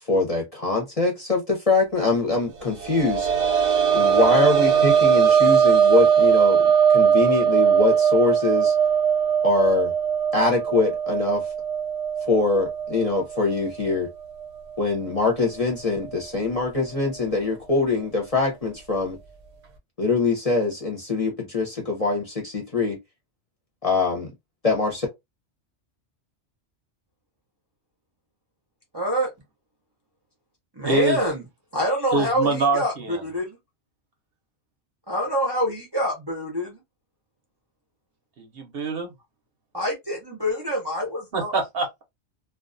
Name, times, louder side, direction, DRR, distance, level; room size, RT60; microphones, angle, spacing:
voice 1, 0.0-3.3 3.9-8.8 9.4-9.9 10.3-11.5 12.2-14.1 14.8-19.2 20.0-23.0 23.8-24.3 24.6-25.1, left 3 dB, 35° left, 0.7 m, -23 dB
sound 1, 2.6-14.1 14.4-14.5 16.0-16.1, right 8 dB, 85° right, 1.0 m, -20 dB
voice 2, 28.9-29.3 30.7-31.4 31.7-33.6 35.1-36.8 39.7-41.5, equal, 30° right, 0.5 m, -26 dB
voice 3, 30.8-31.2 32.1-33.2 38.4-39.1 41.3-42.0, right 3 dB, 60° right, 0.8 m, -25 dB
2.3 x 2.3 x 2.4 m
omnidirectional pair, 1.2 m